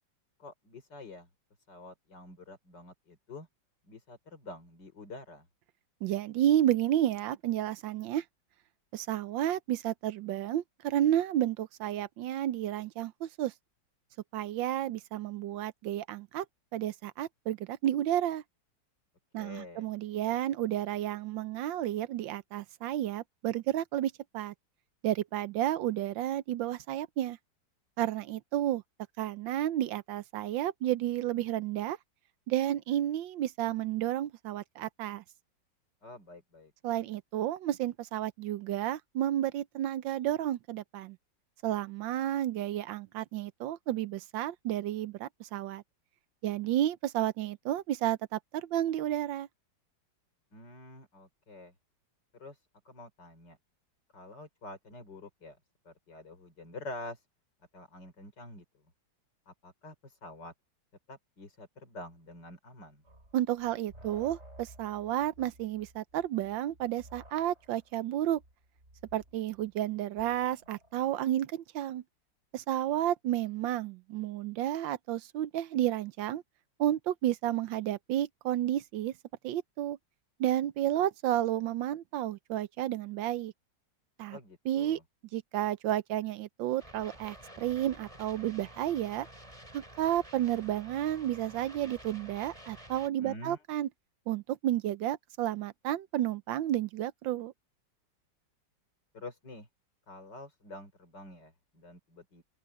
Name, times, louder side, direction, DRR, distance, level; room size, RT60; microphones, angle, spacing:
voice 1, 0.4-1.3 1.7-3.5 3.9-5.5 19.4-19.9 36.0-36.7 50.5-51.7 52.3-53.6 54.1-55.6 55.9-57.3 57.7-58.6 59.5-60.5 61.1-63.0 84.3-85.0 93.2-93.6 99.1-99.7 100.1-102.4, left 2 dB, 65° left, 5.3 m, -47 dB
voice 2, 6.0-8.2 8.9-13.5 14.3-16.4 16.7-18.4 19.3-24.5 25.0-27.4 28.0-28.8 29.2-32.0 32.5-35.2 36.8-41.2 41.6-45.8 46.4-49.5 63.3-68.4 69.1-72.0 72.5-76.4 76.8-79.1 79.4-80.0 80.4-83.5 84.2-84.4 84.7-85.0 85.3-89.3 89.7-93.9 94.3-97.5, right 12 dB, 85° right, 1.5 m, -31 dB
sound 1, 63.0-71.2, right 1 dB, 35° right, 7.8 m, -56 dB
sound 2, 86.8-93.1, right 1 dB, 15° right, 6.7 m, -51 dB
open air
omnidirectional pair, 2.0 m